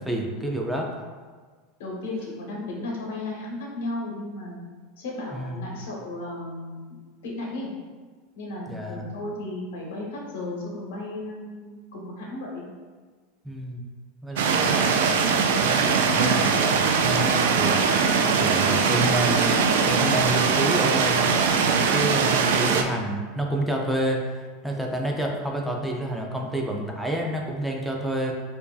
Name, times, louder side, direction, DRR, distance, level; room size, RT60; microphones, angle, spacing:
voice 1, 0.1-0.9 5.3-5.6 8.7-9.0 13.4-13.8 14.2-15.0 15.6-17.8 18.4-24.3 24.6-28.3, right 1 dB, 5° right, 0 dB, 0.4 m, -29 dB
voice 2, 1.8-4.6 5.0-7.7 8.3-12.7, left 2 dB, 85° left, -2 dB, 1.0 m, -34 dB
sound 1, 14.4-22.8, right 5 dB, 85° right, 0.3 m, -21 dB
4.6 x 2.6 x 2.3 m, 1.5 s
supercardioid pair, 140°, 0 cm